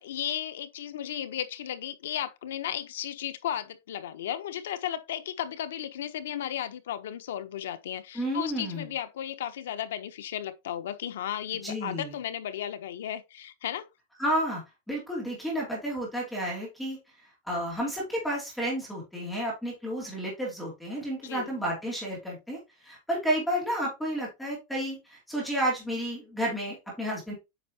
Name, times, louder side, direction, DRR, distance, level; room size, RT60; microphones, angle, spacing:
voice 1, 0.0-13.9 21.2-21.6, left 10 dB, 80° left, 0.8 m, -35 dB
voice 2, 8.1-8.9 11.6-12.1 14.2-14.6 14.9-17.0 17.5-22.6 22.8-27.3, equal, 5° left, 2.5 m, -31 dB
8.3 x 5.3 x 2.8 m
supercardioid pair, 175°, 0 cm